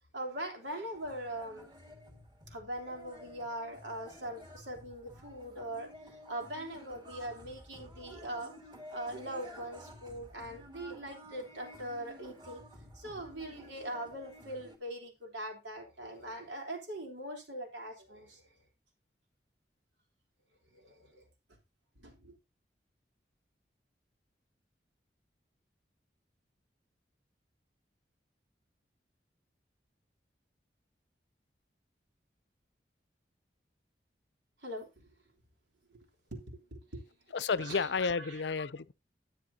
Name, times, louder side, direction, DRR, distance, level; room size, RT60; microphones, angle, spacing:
voice 1, 0.1-1.7 2.5-5.9 6.3-8.5 8.9-12.6 12.9-18.4 20.7-21.2 22.0-22.3 34.6-35.1 35.9-36.0 36.3-37.0 37.7-37.9 38.2-38.4, right 1 dB, 90° right, 3.6 m, -41 dB
sound 1, 0.9-14.8, equal, 25° right, 2.0 m, -52 dB
voice 2, 37.3-38.9, left 5 dB, 80° left, 0.6 m, -31 dB
13.0 x 9.1 x 2.8 m
head